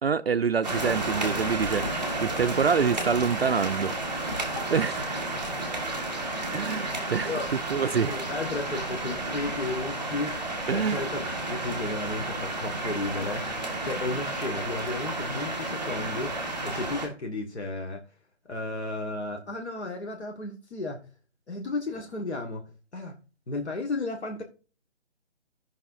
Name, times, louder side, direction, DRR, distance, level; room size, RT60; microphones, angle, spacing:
voice 1, 0.0-3.9 4.7-5.0 6.5-7.3 7.7-8.2 10.7-11.0, right 6 dB, 60° right, 0.5 m, -26 dB
sound 1, 0.6-17.1, right 2 dB, 5° left, 0.8 m, -32 dB
voice 2, 7.3-7.6 8.1-11.2 11.5-16.3 16.6-18.0 18.5-21.0 21.5-23.2 23.5-24.4, left 2 dB, 70° left, 1.8 m, -33 dB
16.0 x 5.7 x 2.6 m
hypercardioid pair, 175°, 35 cm